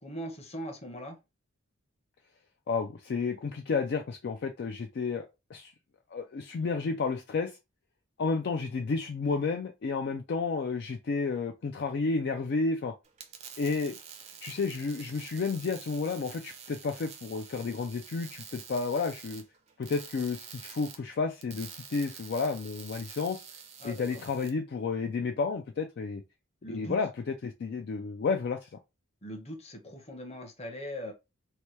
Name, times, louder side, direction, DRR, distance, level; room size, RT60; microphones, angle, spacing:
voice 1, 0.0-1.2 23.8-24.2 26.6-27.0 29.2-31.1, equal, 30° left, 0.8 m, -40 dB
voice 2, 2.7-5.3 5.5-5.7 6.1-7.6 8.2-12.9 13.6-13.9 14.4-19.4 19.8-23.4 23.8-26.2 26.7-28.7, left 4 dB, 50° left, 0.3 m, -31 dB
sound 1, 13.0-24.5, right 7 dB, 30° right, 0.5 m, -48 dB
2.9 x 2.2 x 3.0 m
head